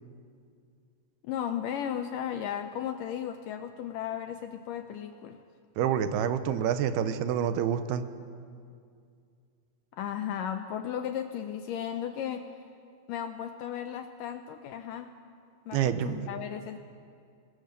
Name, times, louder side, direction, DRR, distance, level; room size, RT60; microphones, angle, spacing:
voice 1, 1.2-5.4 9.9-12.5 13.1-15.1 15.7-16.8, left 9 dB, 75° left, 7 dB, 2.0 m, -35 dB
voice 2, 5.8-8.1 15.7-16.2, right 9 dB, 85° right, 11 dB, 2.8 m, -27 dB
25.0 x 20.0 x 6.8 m, 2.3 s
omnidirectional pair, 4.5 m